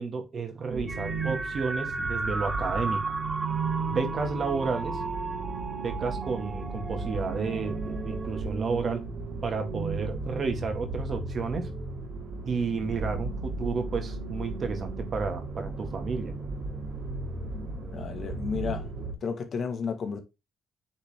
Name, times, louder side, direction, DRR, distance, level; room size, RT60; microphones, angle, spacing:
voice 1, 0.0-3.0 3.9-5.0 5.8-9.0 9.4-11.7 12.4-16.3, right 4 dB, 45° right, 2.1 m, -31 dB
sound 1, 0.7-19.1, right 3 dB, 65° right, 2.4 m, -35 dB
sound 2, 0.9-8.4, right 3 dB, 25° right, 0.8 m, -35 dB
voice 2, 17.9-18.9 19.2-20.2, left 5 dB, 50° left, 1.7 m, -32 dB
8.8 x 4.4 x 3.7 m
cardioid pair, 115°, 0 cm